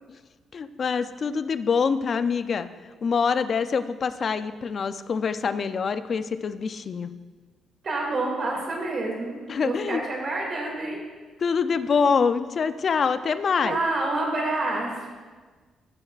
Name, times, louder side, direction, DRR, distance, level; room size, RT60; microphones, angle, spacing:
voice 1, 0.5-2.7 3.0-7.1 9.5-10.0 11.4-13.8, left 5 dB, 50° left, 12 dB, 0.4 m, -25 dB
voice 2, 7.8-11.0 13.6-15.1, right 2 dB, 50° right, -1 dB, 2.3 m, -28 dB
13.5 x 6.5 x 2.4 m, 1.4 s
cardioid pair, 90°, 0 cm